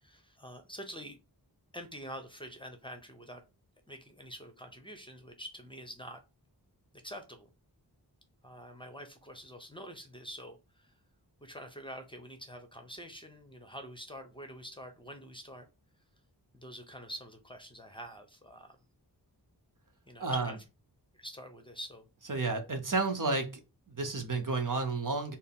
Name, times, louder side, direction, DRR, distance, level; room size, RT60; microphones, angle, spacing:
voice 1, 0.0-1.2 1.7-3.4 3.9-6.2 7.0-7.5 8.4-10.9 11.4-15.7 16.6-18.8 20.1-20.6 21.2-22.1, equal, 10° left, 0.8 m, -46 dB
voice 2, 20.2-20.5 22.3-23.6 23.9-25.4, right 3 dB, 50° right, 0.8 m, -31 dB
4.3 x 2.0 x 3.5 m
wide cardioid pair, 45°, 42 cm